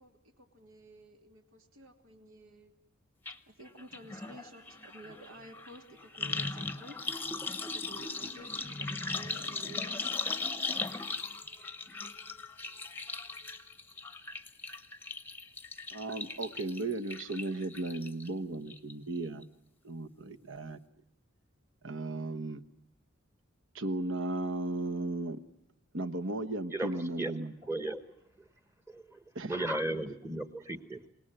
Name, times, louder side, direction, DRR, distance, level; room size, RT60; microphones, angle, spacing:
voice 1, 0.0-2.8 3.5-7.0 7.6-10.2, right 1 dB, 80° right, 3 dB, 3.0 m, -52 dB
sound 1, 3.3-3.4 3.7-18.3 18.7-19.2 19.4-19.5, left 3 dB, 10° left, 0.9 m, -38 dB
voice 2, 15.9-19.5 19.8-20.8 21.8-22.6 23.7-25.4 25.9-27.5 29.3-29.5, right 2 dB, 65° right, 9 dB, 1.2 m, -35 dB
voice 3, 26.7-27.3 27.6-28.0 28.9-31.0, right 1 dB, 10° right, 10 dB, 1.1 m, -36 dB
28.0 x 18.5 x 8.9 m, 0.80 s
head